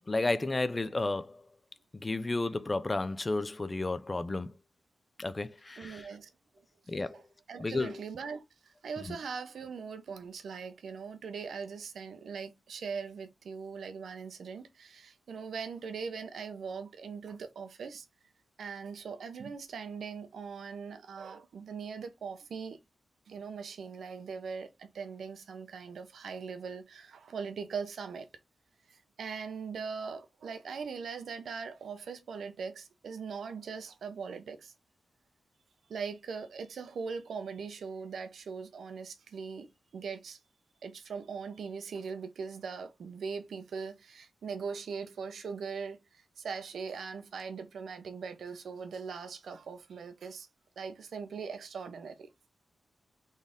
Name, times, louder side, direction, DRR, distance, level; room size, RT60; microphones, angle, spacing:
voice 1, 0.1-1.4 1.9-4.5 5.2-6.1 6.9-7.2 7.6-8.0 9.1-9.2, left 2 dB, 25° left, 0.4 m, -32 dB
voice 2, 5.8-6.3 7.1-7.2 7.5-18.1 18.6-22.8 23.3-28.3 28.9-34.7 35.9-39.7 39.9-40.4 40.8-50.5 50.8-52.3, right 5 dB, 80° right, 0.7 m, -40 dB
4.0 x 3.8 x 3.5 m
wide cardioid pair, 135°, 0 cm